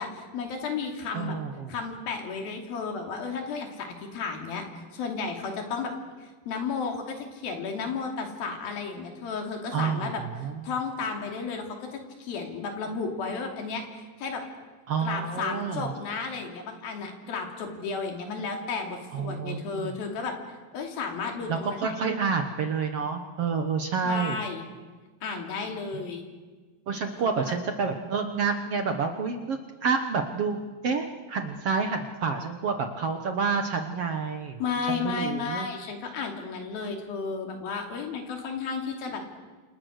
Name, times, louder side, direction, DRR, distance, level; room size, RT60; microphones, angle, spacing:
voice 1, 0.0-1.4 1.7-5.9 6.2-10.2 10.6-14.4 15.0-20.4 20.7-21.8 24.0-24.6 25.2-26.2 27.1-27.5 34.6-39.2, left 5 dB, 85° left, 3 dB, 4.7 m, -33 dB
voice 2, 1.1-1.7 9.7-10.6 14.9-15.9 19.1-19.9 21.5-24.4 25.9-26.0 26.9-34.6 35.0-35.7, right 5 dB, 60° right, 6 dB, 1.7 m, -29 dB
28.0 x 27.5 x 6.6 m, 1.4 s
omnidirectional pair, 4.1 m